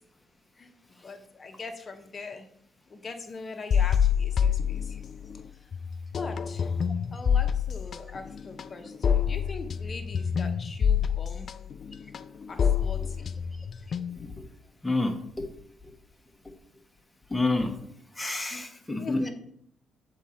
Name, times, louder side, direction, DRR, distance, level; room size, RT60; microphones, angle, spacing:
voice 1, 0.6-2.5 2.9-5.0 6.1-6.8 7.1-11.5 12.5-13.4 18.5-18.7 19.0-19.3, left 3 dB, 35° left, 4 dB, 0.9 m, -42 dB
sound 1, 3.7-5.4 5.7-14.4, left 7 dB, 55° left, 0.3 m, -27 dB
voice 2, 14.8-15.5 16.4-16.5 17.3-17.8 18.2-19.2, left 2 dB, 10° left, 3 dB, 1.0 m, -28 dB
7.2 x 3.8 x 4.2 m, 0.70 s
cardioid pair, 90°, 0 cm